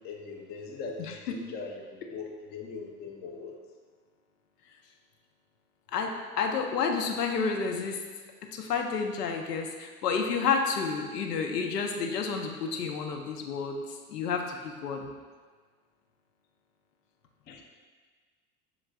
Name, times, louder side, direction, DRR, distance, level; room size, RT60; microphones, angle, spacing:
voice 1, 0.0-3.5 17.5-17.6, left 4 dB, 20° left, 0 dB, 0.4 m, -40 dB
voice 2, 1.0-1.4 5.9-8.0 8.5-15.1, left 5 dB, 80° left, 3 dB, 0.7 m, -30 dB
6.0 x 3.9 x 2.2 m, 1.5 s
figure-of-eight pair, 75°, 48 cm